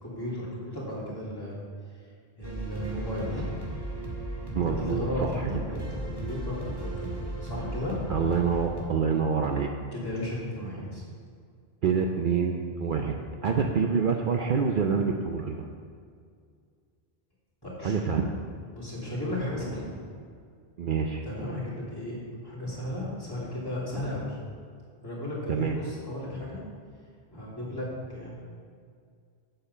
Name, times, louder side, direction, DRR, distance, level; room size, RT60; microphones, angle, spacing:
voice 1, 0.0-1.6 2.4-3.5 4.6-7.2 7.4-8.0 9.9-11.0 17.6-17.9 18.7-19.9 21.2-22.2 22.4-24.4 25.0-26.6 27.3-28.3, left 1 dB, 20° left, -7 dB, 2.9 m, -34 dB
sound 1, 2.4-8.9, right 1 dB, 20° right, 1.6 m, -36 dB
voice 2, 4.5-5.6 8.1-9.7 11.8-13.1 13.4-15.7 17.8-18.3 20.8-21.2 25.5-25.8, right 6 dB, 55° right, 3 dB, 0.7 m, -26 dB
8.4 x 8.0 x 5.5 m, 2.2 s
omnidirectional pair, 1.1 m